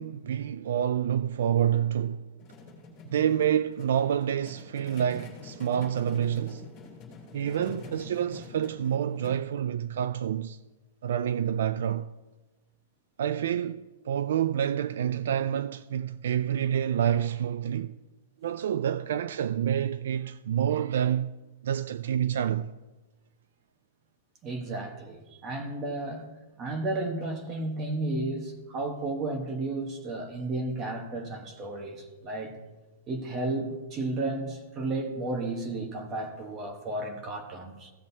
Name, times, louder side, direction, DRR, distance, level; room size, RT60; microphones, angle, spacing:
voice 1, 0.0-2.2 3.1-6.6 7.3-10.6 11.0-12.1 13.2-17.9 18.4-21.3 21.6-22.7, right 9 dB, 65° right, 0.3 m, -28 dB
sound 1, 2.4-9.4, left 3 dB, 15° left, 3.3 m, -46 dB
voice 2, 24.4-26.3 26.6-32.6 33.1-37.9, right 2 dB, 20° right, 1.1 m, -33 dB
16.5 x 7.4 x 2.7 m
supercardioid pair, 175°, 0 cm